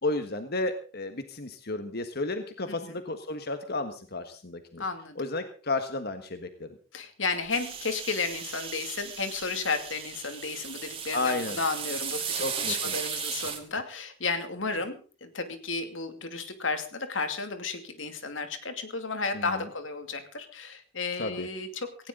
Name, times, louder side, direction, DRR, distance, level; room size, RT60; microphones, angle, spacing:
voice 1, 0.0-4.8 5.2-6.8 11.1-11.6 12.4-12.9 19.3-19.6 21.2-21.5, left 2 dB, 55° left, 8 dB, 1.5 m, -32 dB
voice 2, 2.7-3.0 4.8-5.2 6.9-22.1, left 4 dB, 85° left, 8 dB, 2.5 m, -33 dB
sound 1, 7.5-13.6, right 7 dB, 30° right, 2.7 m, -36 dB
18.0 x 16.5 x 3.9 m, 0.38 s
head